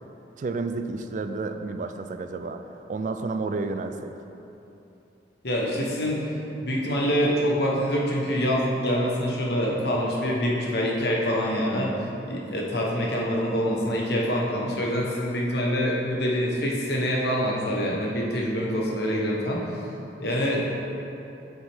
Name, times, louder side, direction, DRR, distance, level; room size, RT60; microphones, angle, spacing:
voice 1, 0.4-2.6 2.9-4.1, right 3 dB, 45° right, 7 dB, 0.3 m, -30 dB
voice 2, 5.4-6.2 6.6-19.6 20.2-20.8, equal, 65° left, -3 dB, 1.2 m, -25 dB
7.4 x 6.1 x 3.6 m, 2.9 s
head